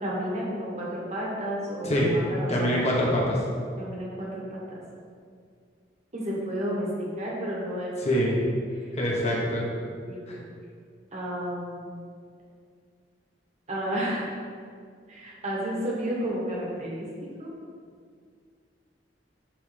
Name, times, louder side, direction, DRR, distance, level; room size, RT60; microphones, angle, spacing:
voice 1, 0.0-2.7 3.8-4.8 6.1-6.9 7.2-7.9 8.7-8.9 10.1-10.4 11.1-11.9 13.7-14.3 15.1-17.1 17.4-17.5, equal, 40° right, -4 dB, 1.6 m, -32 dB
voice 2, 2.5-3.4 8.0-8.4 8.9-9.6 10.3-10.4, equal, 40° left, -3 dB, 1.3 m, -25 dB
10.5 x 3.6 x 3.5 m, 2.1 s
head